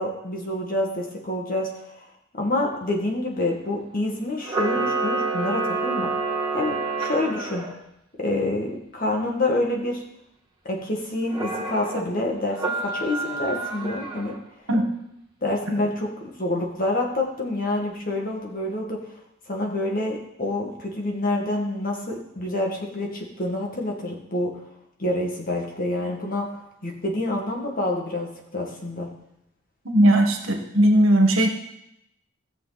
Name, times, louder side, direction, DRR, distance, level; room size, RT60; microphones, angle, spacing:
voice 1, 0.0-2.0 2.3-6.1 6.5-7.7 8.2-10.0 10.6-14.4 15.4-16.1 16.4-19.1 19.5-24.6 25.0-29.1, left 1 dB, 40° left, 0 dB, 2.0 m, -27 dB
Camera, 4.4-7.7 11.3-12.0 12.5-14.4, right 3 dB, 20° right, 1.9 m, -28 dB
voice 2, 29.8-31.5, right 1 dB, 75° right, 3 dB, 1.7 m, -18 dB
17.5 x 6.8 x 4.2 m, 0.82 s
head